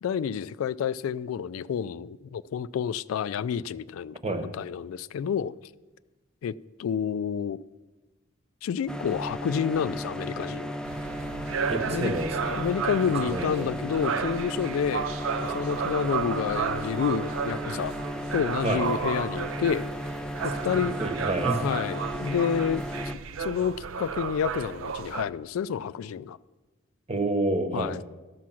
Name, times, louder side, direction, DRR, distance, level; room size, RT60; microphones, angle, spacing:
voice 1, 0.0-5.5 6.4-7.6 8.6-10.8 11.9-12.1 12.4-15.1 15.4-17.9 18.3-19.9 20.4-21.0 21.6-22.8 23.4-26.4 27.7-28.0, left 7 dB, 80° left, 0.3 m, -29 dB
sound 1, 8.9-23.2, equal, 5° left, 0.4 m, -35 dB
sound 2, 10.8-25.3, right 6 dB, 75° right, 0.5 m, -33 dB
voice 2, 11.7-12.6 13.1-13.7 18.6-18.9 21.0-21.6 27.1-27.9, right 2 dB, 30° right, 1.0 m, -29 dB
13.5 x 6.2 x 5.8 m
head